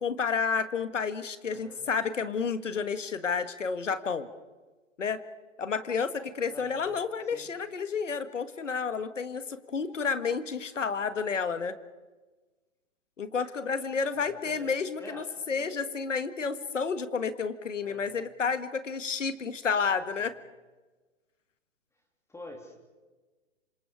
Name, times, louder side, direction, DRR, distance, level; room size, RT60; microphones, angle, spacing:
voice 1, 0.0-4.3 5.0-5.2 5.6-11.7 13.2-20.3, left 5 dB, 75° left, 11 dB, 1.8 m, -30 dB
voice 2, 1.5-1.8 6.5-6.9 7.2-7.5 10.8-11.1 14.1-15.9 17.8-18.2 20.2-20.4 22.3-22.8, left 1 dB, 5° left, 2 dB, 2.9 m, -48 dB
28.5 x 26.0 x 5.0 m, 1.2 s
figure-of-eight pair, 115°, 37 cm